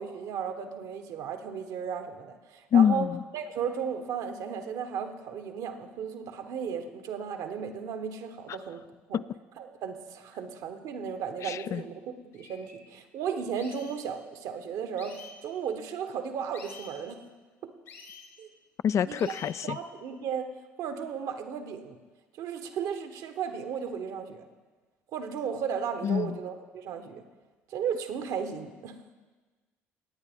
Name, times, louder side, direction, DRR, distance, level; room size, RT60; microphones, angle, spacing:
voice 1, 0.0-3.1 3.3-8.8 9.1-9.2 9.6-12.0 12.3-17.2 18.4-18.5 19.0-19.3 19.6-20.5 20.8-22.0 22.4-24.5 25.1-27.2 27.7-29.0, right 7 dB, 65° right, 7 dB, 1.1 m, -35 dB
voice 2, 2.7-3.2 11.4-11.8 18.8-19.8 26.0-26.4, left 8 dB, 45° left, 16 dB, 0.3 m, -25 dB
sound 1, 11.8-11.9 12.3-12.7 13.6-14.0 15.0-15.3 16.5-16.9 17.8-18.3 19.1-19.7, left 5 dB, 80° left, 2.3 m, -48 dB
19.0 x 8.9 x 3.6 m, 1.3 s
hypercardioid pair, 60°, 7 cm